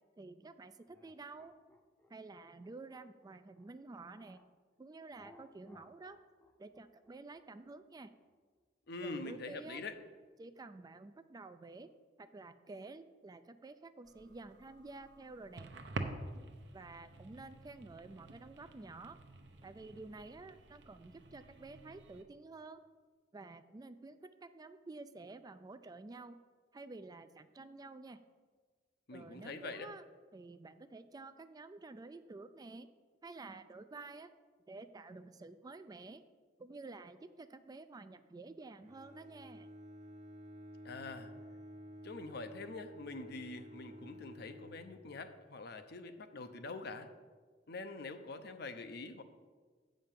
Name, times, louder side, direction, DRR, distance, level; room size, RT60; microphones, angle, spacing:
voice 1, 0.2-1.6 2.1-4.4 4.8-6.2 6.6-8.1 9.0-9.8 10.4-11.9 12.2-15.7 16.7-19.2 19.6-22.8 23.3-26.4 26.7-28.2 29.1-30.0 30.3-32.9 33.2-34.3 34.7-36.2 36.6-39.7, right 3 dB, 20° right, 11 dB, 0.3 m, -51 dB
sound 1, 0.9-4.5 5.1-9.6, left 1 dB, 10° left, 0.7 m, -64 dB
voice 2, 8.9-10.0 29.1-29.9 40.8-41.3 42.0-47.1 47.7-49.2, left 3 dB, 60° left, 9 dB, 0.7 m, -45 dB
sound 2, 14.0-22.2, right 2 dB, 70° right, 0.8 m, -48 dB
Bowed string instrument, 38.8-45.5, equal, 40° right, 0.9 m, -52 dB
7.8 x 5.1 x 7.4 m, 1.5 s
head